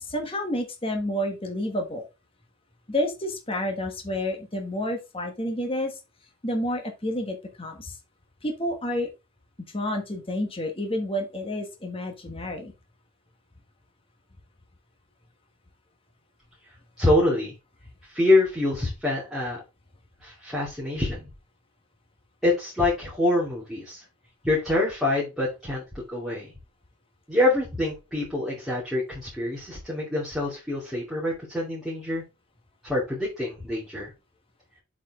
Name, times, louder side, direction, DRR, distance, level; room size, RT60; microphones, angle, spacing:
voice 1, 0.0-2.0 2.9-5.9 6.4-8.0 8.4-9.1 9.7-12.7, left 1 dB, 25° left, 3 dB, 1.6 m, -29 dB
voice 2, 17.0-17.5 18.0-19.6 20.2-21.3 22.4-24.0 24.4-26.5 27.3-32.2 32.8-34.1, left 2 dB, ahead, -7 dB, 2.6 m, -25 dB
7.4 x 4.9 x 3.7 m, 0.26 s
head